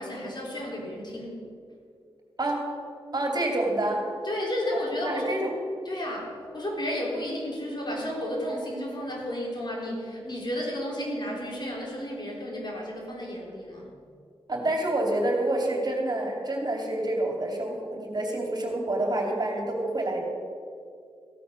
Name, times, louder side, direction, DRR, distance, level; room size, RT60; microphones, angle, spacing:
voice 1, 0.0-1.4 4.2-5.4 5.9-13.9, equal, 45° left, -2 dB, 3.7 m, -32 dB
voice 2, 3.1-4.0 5.0-5.5 14.5-20.2, right 1 dB, 40° right, 1 dB, 2.9 m, -27 dB
15.5 x 8.6 x 6.4 m, 2.4 s
cardioid pair, 60°, 10 cm